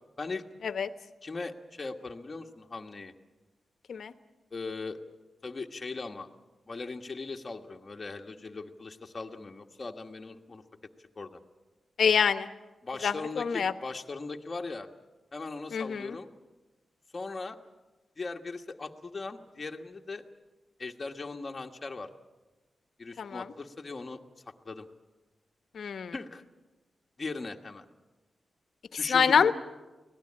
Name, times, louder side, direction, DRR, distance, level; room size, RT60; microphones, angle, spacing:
voice 1, 1.2-3.1 4.5-5.0 5.4-6.3 6.7-10.6 11.2-11.4 12.8-14.9 15.3-16.3 17.1-17.6 18.2-20.2 20.8-22.1 23.0-24.2 24.6-24.9 26.1-26.4 27.2-27.8 29.0-29.5, left 3 dB, 30° left, 2 dB, 1.4 m, -39 dB
voice 2, 12.0-12.5 13.0-13.7 15.7-16.2 23.2-23.4 25.7-26.1 29.1-29.5, left 6 dB, 75° left, 11 dB, 1.0 m, -26 dB
24.0 x 17.5 x 8.7 m, 1.1 s
wide cardioid pair, 120°, 0 cm